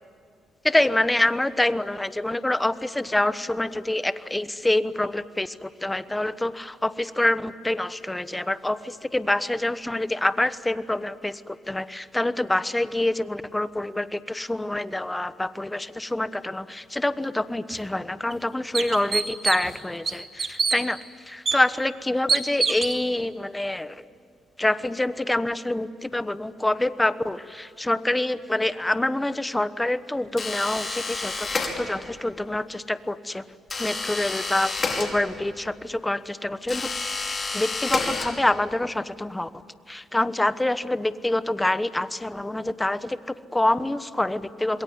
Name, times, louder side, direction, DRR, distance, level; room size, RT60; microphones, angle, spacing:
voice 1, 0.6-21.0 21.2-24.0 24.6-33.4 33.8-36.9 37.5-39.5 39.9-44.8, left 1 dB, 10° left, 14 dB, 1.1 m, -26 dB
sound 1, 17.7-17.8 18.3-18.4 18.7-19.7 20.1-20.8 21.5-21.6 22.3-23.0, right 5 dB, 40° right, 2.4 m, -24 dB
sound 2, 30.4-32.2 33.7-35.6 36.7-38.7, left 3 dB, 30° left, 5.1 m, -30 dB
27.0 x 22.0 x 9.5 m, 2.4 s
cardioid pair, 90°, 0 cm